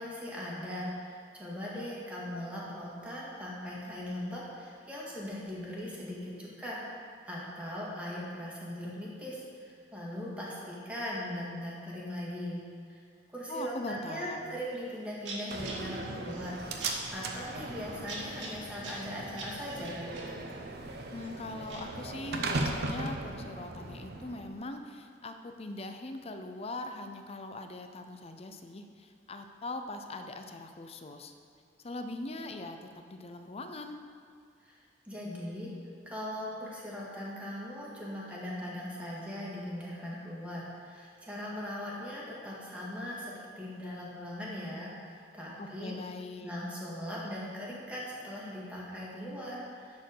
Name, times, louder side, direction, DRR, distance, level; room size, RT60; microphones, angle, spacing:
voice 1, 0.0-6.9 7.3-12.6 12.9-13.0 13.3-16.8 17.1-20.0 34.6-34.8 35.1-35.7 36.1-46.0 46.4-50.0, equal, 5° right, -6 dB, 1.9 m, -39 dB
voice 2, 13.5-14.6 21.1-31.3 31.8-34.0 45.6-46.5, left 2 dB, 35° left, 7 dB, 0.5 m, -41 dB
sound 1, 14.7-14.9 15.2-22.0, right 2 dB, 80° right, 2.0 m, -45 dB
Slam, 15.5-24.5, right 2 dB, 55° right, 0.8 m, -38 dB
10.5 x 4.5 x 6.5 m, 2.3 s
head